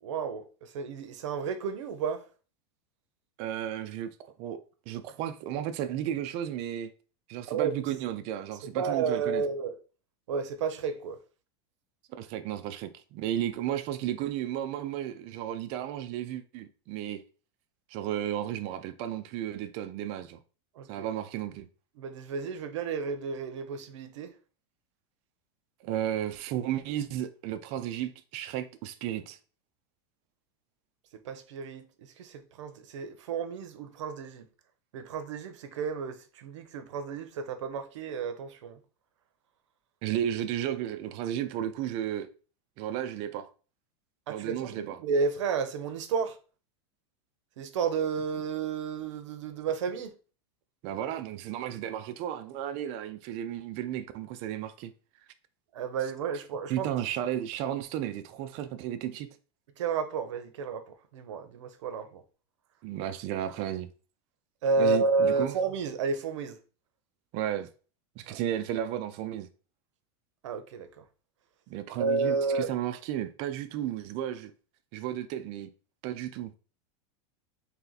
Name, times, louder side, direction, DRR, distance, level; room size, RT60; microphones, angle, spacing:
voice 1, 0.0-2.3 7.5-7.8 8.7-9.8 10.3-11.2 20.8-21.1 22.0-24.3 31.2-34.5 34.9-38.8 44.3-46.4 47.6-50.1 55.7-56.9 59.8-62.2 64.6-66.6 68.3-68.4 70.4-71.0 72.0-72.7, right 5 dB, 90° right, 0.7 m, -31 dB
voice 2, 3.4-4.1 4.4-4.6 4.9-6.9 7.3-9.4 12.2-17.2 17.9-20.4 20.9-21.7 25.8-29.4 40.0-42.3 42.8-43.5 44.3-45.0 50.8-54.9 56.7-59.3 62.8-63.9 64.8-65.5 67.3-67.7 68.2-69.5 71.7-74.5 74.9-75.7 76.0-76.5, right 11 dB, 40° right, 0.4 m, -33 dB
3.2 x 2.9 x 3.9 m
supercardioid pair, 145°, 15 cm